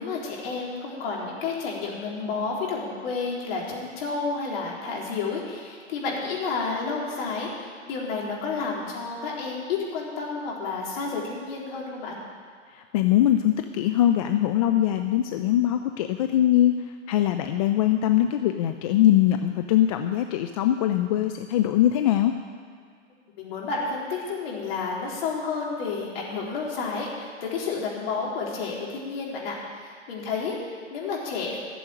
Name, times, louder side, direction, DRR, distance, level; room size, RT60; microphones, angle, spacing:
voice 1, 0.0-12.2 23.4-31.6, left 4 dB, 50° left, -3 dB, 3.9 m, -31 dB
voice 2, 12.7-16.7 17.1-22.3, left 12 dB, 30° left, 7 dB, 0.4 m, -22 dB
13.0 x 7.0 x 9.1 m, 2.1 s
hypercardioid pair, 125°, 38 cm